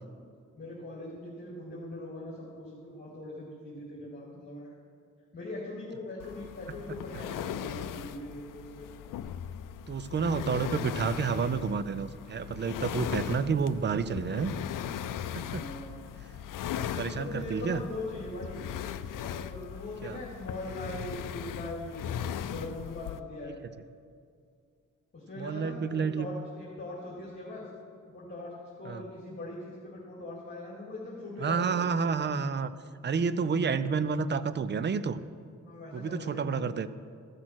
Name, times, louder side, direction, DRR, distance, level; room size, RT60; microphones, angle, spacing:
voice 1, 0.5-4.7 5.3-8.9 15.5-16.0 16.9-18.6 19.1-22.0 22.5-23.6 25.1-27.7 28.1-28.5 28.8-31.8 35.6-36.4, left 2 dB, 30° left, -5 dB, 2.4 m, -41 dB
sound 1, 6.2-23.2, left 9 dB, 80° left, 0.5 m, -38 dB
voice 2, 9.9-14.5 15.3-15.7 17.0-17.8 20.0-20.2 25.4-26.3 28.8-29.0 31.4-32.7 33.0-35.2 35.9-36.9, right 5 dB, 35° right, 14 dB, 0.4 m, -30 dB
14.5 x 6.2 x 6.1 m, 2.3 s
wide cardioid pair, 115°, 32 cm